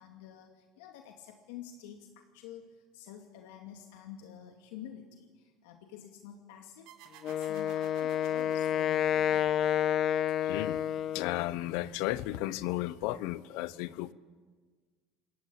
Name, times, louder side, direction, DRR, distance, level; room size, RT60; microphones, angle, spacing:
voice 1, 0.0-9.6, left 9 dB, 90° left, 4 dB, 2.5 m, -49 dB
sound 1, 6.9-10.2, right 10 dB, 65° right, 3.7 m, -55 dB
Wind instrument woodwind instrument, 7.2-11.5, left 10 dB, 40° left, 0.7 m, -29 dB
voice 2, 10.5-10.8 11.1-14.1, left 16 dB, 70° left, 17 dB, 1.0 m, -34 dB
27.0 x 20.5 x 8.7 m, 1.5 s
cardioid pair, 140°, 0 cm